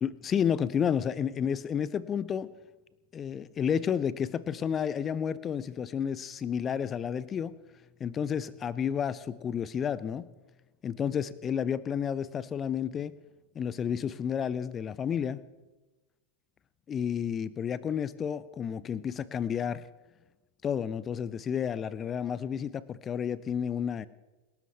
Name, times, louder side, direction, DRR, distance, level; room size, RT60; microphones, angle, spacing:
voice 1, 0.0-2.5 3.1-7.5 8.0-10.3 10.8-13.1 13.5-15.4 16.9-19.8 20.6-24.1, left 8 dB, 25° left, 18 dB, 0.7 m, -31 dB
28.0 x 13.0 x 3.3 m, 1.1 s
figure-of-eight pair, 90°, 0 cm